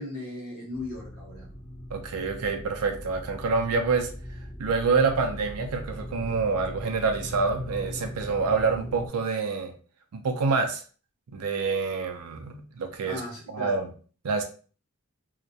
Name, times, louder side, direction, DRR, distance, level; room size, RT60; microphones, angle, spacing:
voice 1, 0.0-1.5 2.9-3.0 13.1-13.8, left 1 dB, 65° left, -4 dB, 1.0 m, -37 dB
sound 1, 0.7-9.1, equal, 20° left, 0.4 m, -40 dB
voice 2, 1.9-4.1 4.6-9.7 10.1-10.8 11.3-13.2 13.5-13.9 14.2-14.4, right 4 dB, 90° right, 4 dB, 0.4 m, -27 dB
2.3 x 2.1 x 2.6 m, 0.39 s
head